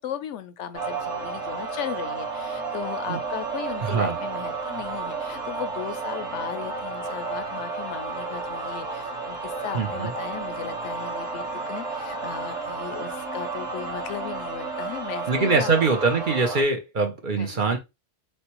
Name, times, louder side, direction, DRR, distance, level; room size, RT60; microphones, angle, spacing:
voice 1, 0.0-15.7 17.4-17.8, left 9 dB, 75° left, 0.9 m, -36 dB
sound 1, 0.7-16.6, right 3 dB, 90° right, 1.6 m, -32 dB
voice 2, 3.8-4.2 9.7-10.1 15.3-17.8, right 4 dB, 45° right, 0.8 m, -23 dB
4.2 x 3.3 x 2.9 m
omnidirectional pair, 1.3 m